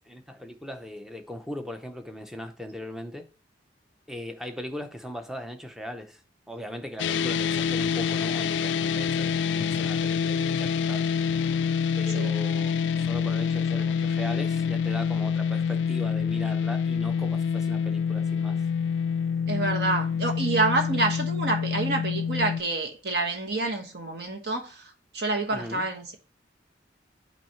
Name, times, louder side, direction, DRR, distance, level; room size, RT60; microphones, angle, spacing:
voice 1, 0.1-3.3 4.1-6.2 6.5-11.1 11.9-18.7 25.5-25.9, equal, 5° right, 0.6 m, -39 dB
sound 1, 7.0-22.6, left 6 dB, 70° left, 0.3 m, -26 dB
voice 2, 12.1-12.4 19.5-26.1, right 2 dB, 55° right, 1.1 m, -28 dB
5.8 x 3.2 x 5.7 m
head